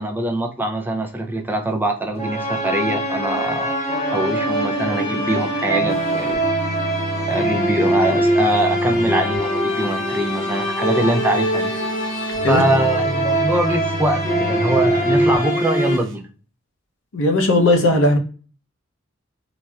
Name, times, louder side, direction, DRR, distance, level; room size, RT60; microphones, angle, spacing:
voice 1, 0.0-6.4 7.3-11.7 12.5-16.3, right 1 dB, 10° right, 0.3 m, -23 dB
sound 1, 2.2-16.0, right 1 dB, 35° left, 1.0 m, -22 dB
sound 2, 5.9-9.4 9.7-15.4 15.7-16.1, equal, 80° right, 0.8 m, -32 dB
voice 2, 17.1-18.2, left 2 dB, 80° left, 0.7 m, -16 dB
4.0 x 2.2 x 2.2 m
head